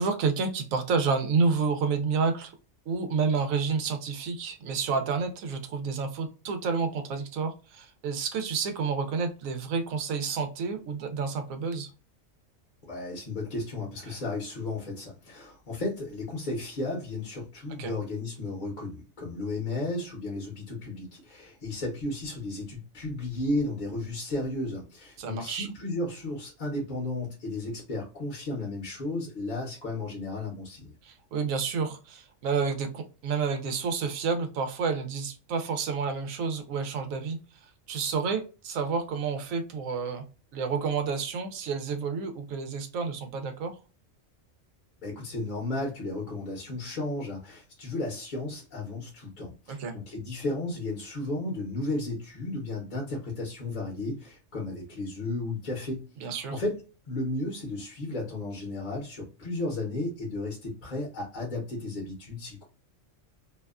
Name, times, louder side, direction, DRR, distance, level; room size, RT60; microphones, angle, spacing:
voice 1, 0.0-2.5 2.9-11.9 14.1-14.2 17.8-17.9 25.2-25.7 31.0-40.2 40.5-43.7 49.7-49.9 56.2-56.6, right 5 dB, 90° right, 6 dB, 1.0 m, -30 dB
voice 2, 12.9-30.9 45.0-56.8 57.1-62.6, left 2 dB, 40° left, -3 dB, 0.9 m, -34 dB
2.7 x 2.2 x 2.3 m, 0.33 s
omnidirectional pair, 1.4 m